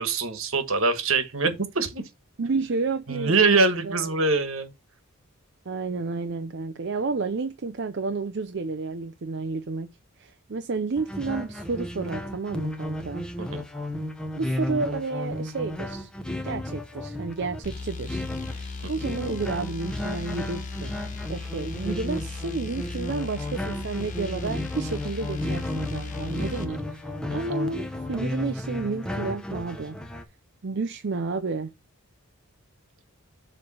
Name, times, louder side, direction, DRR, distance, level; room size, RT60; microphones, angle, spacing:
voice 1, 0.0-2.0 3.1-4.7 13.5-13.6 18.8-18.9 26.4-26.6 27.3-27.4, right 3 dB, 65° right, 1.4 m, -24 dB
voice 2, 2.4-4.0 5.7-9.9 10.2-13.2 14.4-16.1 16.4-20.9 21.3-27.0 27.3-30.0 30.6-31.7, right 4 dB, 50° right, 0.5 m, -31 dB
sound 1, 11.0-30.2, left 1 dB, 5° left, 0.7 m, -33 dB
sound 2, 17.6-26.7, left 4 dB, 35° left, 0.9 m, -37 dB
7.1 x 3.3 x 6.2 m
head